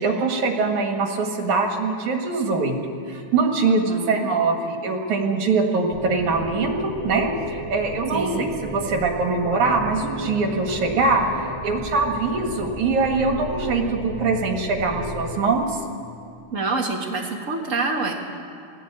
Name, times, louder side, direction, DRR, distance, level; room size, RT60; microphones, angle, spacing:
voice 1, 0.0-2.8 3.1-8.5 8.7-11.3 11.6-15.8, right 4 dB, 75° right, 3 dB, 3.2 m, -23 dB
voice 2, 3.6-4.3 8.1-8.5 16.5-18.1, right 3 dB, 30° right, 1 dB, 1.8 m, -26 dB
sound 1, 5.9-15.4, right 1 dB, 10° right, 5.4 m, -33 dB
20.0 x 16.5 x 8.8 m, 2.4 s
omnidirectional pair, 3.4 m